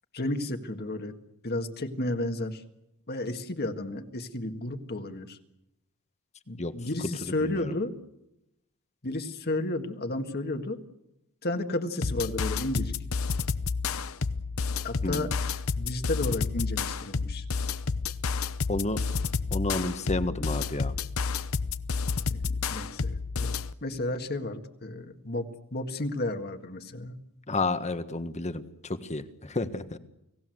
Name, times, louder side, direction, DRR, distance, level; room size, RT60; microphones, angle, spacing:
voice 1, 0.1-1.1 1.4-2.6 3.1-5.4 6.5-8.0 9.0-10.8 11.4-12.9 14.8-17.5 22.3-23.6 23.8-27.2, left 2 dB, 45° left, 6 dB, 1.9 m, -32 dB
voice 2, 7.2-7.7 15.0-15.3 18.7-19.0 19.5-20.9 27.5-30.0, left 2 dB, 30° left, 11 dB, 1.4 m, -31 dB
sound 1, 12.0-23.7, left 4 dB, 65° left, 0.9 m, -30 dB
30.0 x 18.0 x 7.9 m, 0.87 s
head